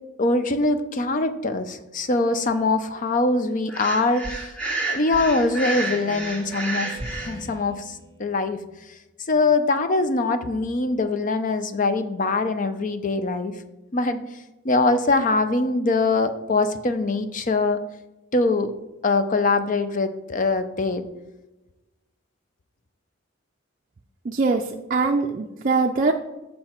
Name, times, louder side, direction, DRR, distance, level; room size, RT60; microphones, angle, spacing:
voice 1, 0.2-4.5 4.9-8.6 9.3-13.5 13.9-14.2 14.6-17.8 18.3-18.7 19.0-21.1, left 3 dB, 40° left, 10 dB, 0.5 m, -23 dB
Breathing, 3.7-7.3, right 2 dB, 5° left, 1.2 m, -30 dB
Speech synthesizer, 5.1-8.6, right 3 dB, 25° right, 0.8 m, -44 dB
voice 2, 24.2-26.1, right 3 dB, 40° right, 2 dB, 0.4 m, -22 dB
7.7 x 5.3 x 4.4 m, 1.1 s
head